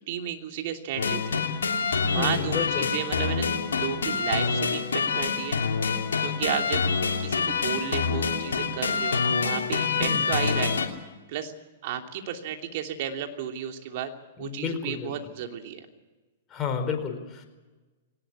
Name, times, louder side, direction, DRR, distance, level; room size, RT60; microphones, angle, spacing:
voice 1, 0.1-1.4 1.8-3.5 3.7-5.6 5.8-6.8 7.2-10.8 11.3-11.5 11.8-14.1 14.4-15.9, right 9 dB, 55° right, 4 dB, 3.0 m, -33 dB
sound 1, 1.0-10.9, left 5 dB, 80° left, 3.1 m, -26 dB
voice 2, 2.1-2.9 10.0-10.3 14.4-15.1 16.5-17.5, left 6 dB, 30° left, 5 dB, 4.6 m, -31 dB
22.0 x 19.0 x 8.6 m, 1.2 s
hypercardioid pair, 110°, 0 cm